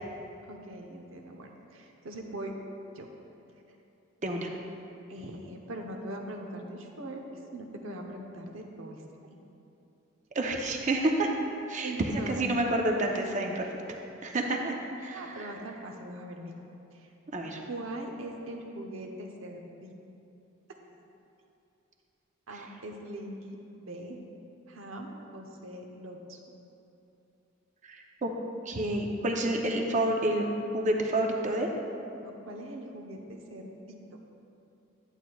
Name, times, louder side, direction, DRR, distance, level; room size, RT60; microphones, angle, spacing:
voice 1, 0.5-2.5 2.9-3.1 5.1-7.2 7.5-9.0 9.3-9.4 11.8-12.7 15.1-16.5 16.9-17.1 17.7-19.9 22.5-24.2 24.7-26.4 32.2-34.0, right 1 dB, 80° right, 2 dB, 0.8 m, -41 dB
voice 2, 10.3-11.3 11.7-13.7 14.2-15.5 17.3-17.6 27.8-28.3 28.7-30.5 30.7-31.7, right 1 dB, 35° right, 2 dB, 0.6 m, -29 dB
11.0 x 8.0 x 2.3 m, 2.8 s
head